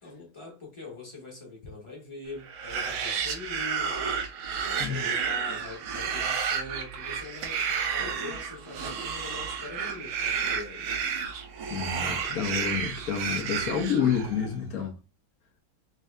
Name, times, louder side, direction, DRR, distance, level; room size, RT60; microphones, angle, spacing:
voice 1, 0.0-4.2 4.6-11.0, left 3 dB, 20° left, 0.9 m, -43 dB
sound 1, 2.5-14.5, right 6 dB, 70° right, 1.4 m, -31 dB
voice 2, 11.7-14.9, left 7 dB, 55° left, 1.1 m, -29 dB
3.7 x 2.7 x 3.3 m
omnidirectional pair, 2.2 m